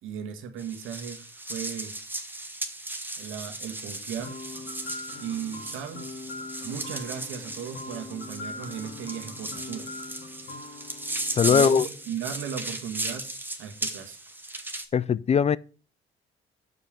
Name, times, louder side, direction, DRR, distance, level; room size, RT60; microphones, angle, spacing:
voice 1, 0.0-2.0 3.2-4.4 5.2-6.1 6.6-9.9 11.4-13.3 13.6-14.2, right 8 dB, 90° right, 1.5 m, -36 dB
sound 1, 0.6-14.9, right 2 dB, 10° right, 1.5 m, -36 dB
sound 2, 4.2-12.1, left 3 dB, 55° left, 2.4 m, -42 dB
voice 2, 11.4-11.9 14.9-15.6, left 7 dB, 35° left, 0.4 m, -20 dB
6.8 x 5.3 x 7.1 m
cardioid pair, 90°, 20 cm